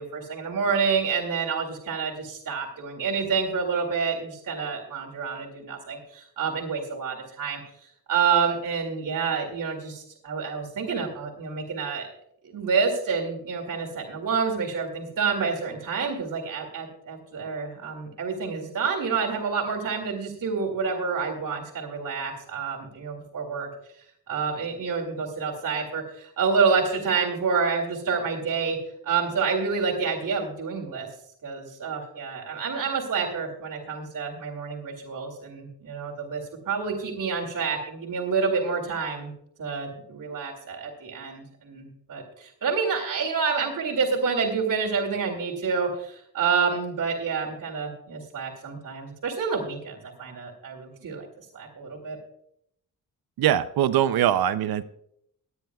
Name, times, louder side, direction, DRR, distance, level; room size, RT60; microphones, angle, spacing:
voice 1, 0.0-7.6 8.1-12.1 12.4-23.7 24.3-28.8 29.0-31.1 31.4-39.3 39.6-51.3 51.5-52.2, right 5 dB, 60° right, -1 dB, 2.4 m, -28 dB
voice 2, 53.4-54.8, right 11 dB, 80° right, 14 dB, 0.6 m, -22 dB
22.5 x 9.2 x 2.3 m, 0.72 s
cardioid pair, 65°, 36 cm